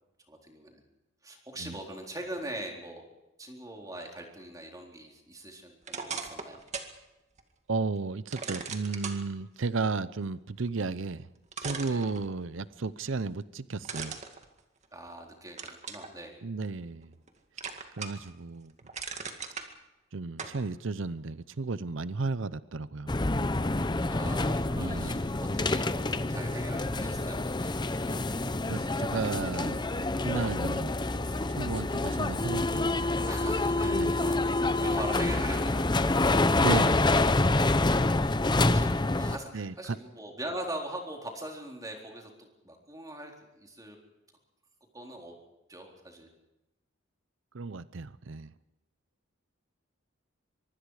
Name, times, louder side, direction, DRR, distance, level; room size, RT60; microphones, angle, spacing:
voice 1, 0.3-0.8 1.2-3.0 3.4-6.6 11.9-12.1 14.9-16.4 24.1-26.0 26.3-28.2 33.2-34.5 34.8-36.2 38.2-44.0 44.9-45.4 45.7-46.3, right 1 dB, 15° right, 1 dB, 4.0 m, -42 dB
sound 1, 5.8-7.0 7.4-7.5 8.3-9.2 11.0-11.1 11.5-12.6 13.8-15.1 15.6-16.1 16.6-17.3 17.6-18.3 18.7-19.7 20.4-20.6, right 5 dB, 35° right, 2.1 m, -38 dB
voice 2, 7.7-11.3 11.6-14.2 16.4-17.1 18.0-18.7 20.1-23.2 24.7-25.2 28.7-29.8 30.2-30.9 31.6-32.9 33.9-34.1 36.6-37.1 39.5-40.0 47.5-48.5, right 4 dB, 65° right, 16 dB, 0.7 m, -33 dB
sound 2, 23.1-39.4, left 2 dB, 20° left, 0.7 m, -27 dB
24.5 x 23.5 x 4.9 m, 0.96 s
head